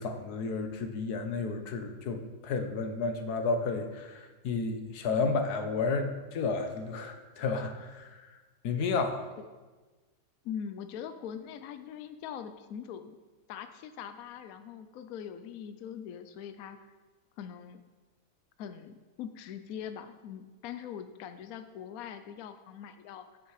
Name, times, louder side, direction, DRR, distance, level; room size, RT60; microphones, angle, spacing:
voice 1, 0.0-8.4 8.6-9.3, left 4 dB, 55° left, 6 dB, 1.3 m, -32 dB
voice 2, 10.4-13.2 13.5-16.9 17.4-17.8 18.6-23.5, left 8 dB, 80° left, 9 dB, 0.8 m, -42 dB
15.5 x 6.2 x 4.8 m, 1.3 s
omnidirectional pair, 2.2 m